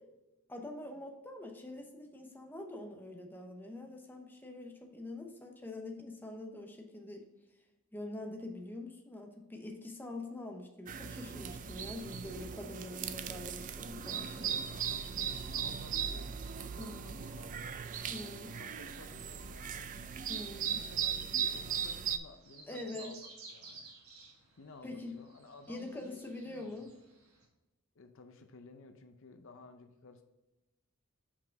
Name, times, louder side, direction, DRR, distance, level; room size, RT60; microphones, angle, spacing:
voice 1, 0.5-7.2 7.9-14.8 16.8-17.2 18.1-18.6 20.3-20.8 22.7-23.2 24.8-25.2 25.7-26.9, left 2 dB, 10° left, 2 dB, 0.8 m, -45 dB
sound 1, 10.9-22.2, right 8 dB, 35° right, 0.4 m, -38 dB
voice 2, 14.1-17.8 18.6-19.9 20.4-23.2 23.5-23.9 24.6-26.9 27.9-30.2, left 3 dB, 60° left, 7 dB, 0.6 m, -55 dB
sound 2, 19.1-27.5, right 4 dB, 85° right, 1.4 m, -56 dB
5.8 x 4.8 x 4.6 m, 1.0 s
head